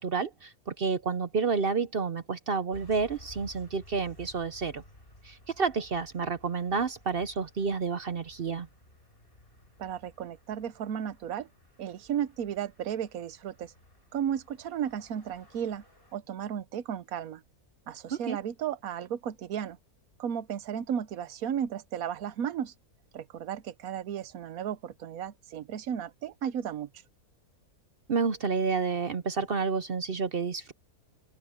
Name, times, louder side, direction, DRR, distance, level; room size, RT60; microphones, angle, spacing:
voice 1, 0.0-4.8 5.2-8.7 18.1-18.4 28.1-30.7, right 5 dB, 50° right, 0.8 m, -30 dB
sound 1, 2.7-16.2, left 1 dB, 35° left, 7.3 m, -56 dB
voice 2, 9.8-11.5 11.8-13.7 14.1-15.8 16.1-17.4 17.9-19.8 20.2-22.7 23.1-26.9, right 9 dB, 70° right, 1.3 m, -34 dB
open air
omnidirectional pair, 1.6 m